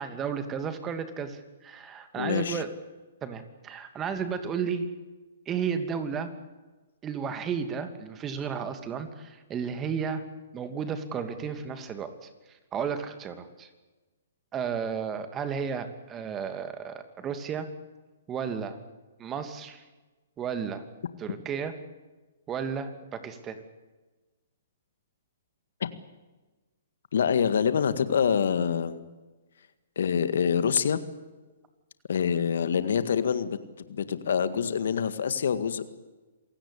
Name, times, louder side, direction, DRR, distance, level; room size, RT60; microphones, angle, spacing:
voice 1, 0.0-2.7 3.2-4.9 5.5-6.3 7.0-10.2 10.5-12.3 12.7-13.7 14.5-17.7 18.3-18.8 19.2-19.8 20.4-20.8 21.2-21.7 22.5-23.6, right 6 dB, 20° right, 9 dB, 2.7 m, -33 dB
voice 2, 2.2-2.6 25.8-25.9 27.1-29.0 30.0-31.0 32.1-33.6 33.9-35.8, left 7 dB, 70° left, 12 dB, 1.8 m, -26 dB
27.5 x 17.5 x 8.5 m, 1.2 s
hypercardioid pair, 125°, 0 cm